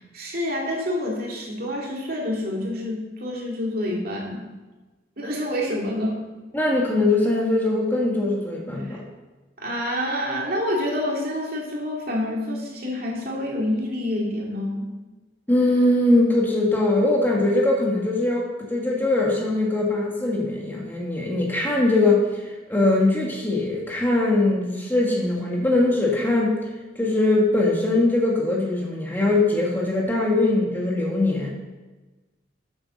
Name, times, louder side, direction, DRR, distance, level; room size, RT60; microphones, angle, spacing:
voice 1, 0.0-4.5 5.2-6.3 8.7-9.0 9.6-14.9, left 1 dB, 50° right, -2 dB, 2.6 m, -27 dB
voice 2, 6.5-9.0 15.5-26.6 27.0-31.5, left 2 dB, 10° left, -3 dB, 1.7 m, -21 dB
9.3 x 8.0 x 6.4 m, 1.2 s
head